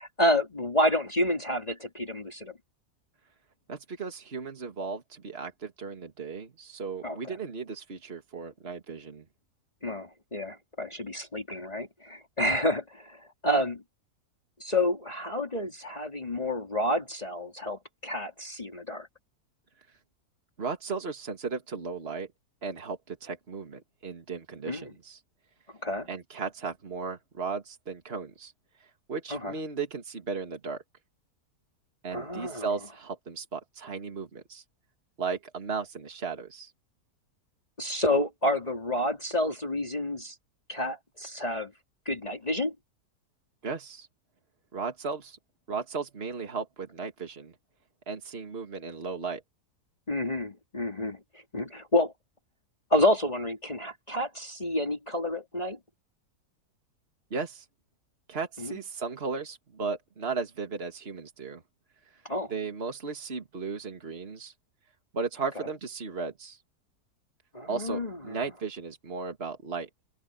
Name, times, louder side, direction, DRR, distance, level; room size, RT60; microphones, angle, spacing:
voice 1, 0.0-2.6 7.0-7.3 9.8-13.8 14.6-19.1 24.7-24.9 25.8-26.1 29.3-29.5 32.1-32.7 37.8-40.3 40.7-41.7 42.0-42.7 50.1-52.1 52.9-55.8 58.6-58.8 62.2-62.5 65.6-65.7 67.5-68.4, left 1 dB, 25° left, 3.0 m, -29 dB
voice 2, 3.7-9.3 20.6-22.3 22.6-25.2 26.1-28.5 29.1-30.8 32.0-34.6 35.2-36.7 43.6-44.1 44.7-45.4 45.7-47.6 48.1-49.4 57.3-57.7 58.3-61.6 62.5-64.5 65.1-66.6 67.7-69.9, right 4 dB, 40° right, 2.4 m, -35 dB
open air
omnidirectional pair, 1.6 m